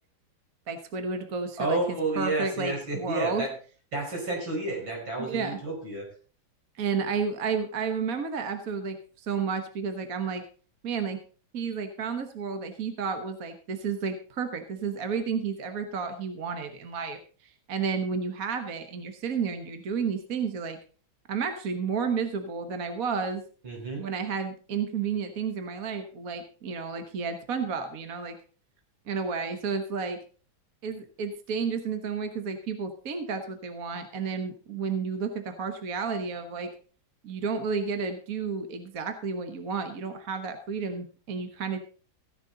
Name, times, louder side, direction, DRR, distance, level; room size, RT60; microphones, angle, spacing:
voice 1, 0.7-1.8 2.2-3.5 5.2-5.6 6.8-10.4 10.8-11.2 11.5-20.8 21.3-23.4 24.0-28.4 29.1-30.2 30.8-36.7 37.2-41.9, right 5 dB, 50° right, 7 dB, 1.5 m, -31 dB
voice 2, 1.6-3.5 3.9-6.1 23.6-24.0, right 2 dB, 80° right, -1 dB, 5.8 m, -30 dB
15.0 x 10.5 x 3.9 m, 0.40 s
omnidirectional pair, 2.1 m